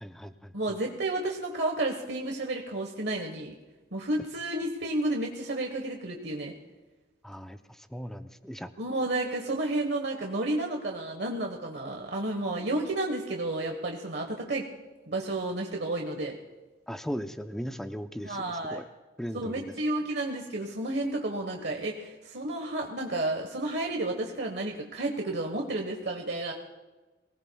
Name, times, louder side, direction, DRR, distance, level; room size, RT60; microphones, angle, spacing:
voice 1, 0.0-0.5 7.2-8.7 16.9-18.8 19.2-19.7, equal, ahead, 8 dB, 0.6 m, -38 dB
voice 2, 0.5-3.6 3.9-6.5 8.8-14.7 15.1-16.4 18.2-18.8 19.3-26.5, right 2 dB, 65° right, 3 dB, 1.2 m, -31 dB
23.5 x 18.0 x 2.3 m, 1.2 s
head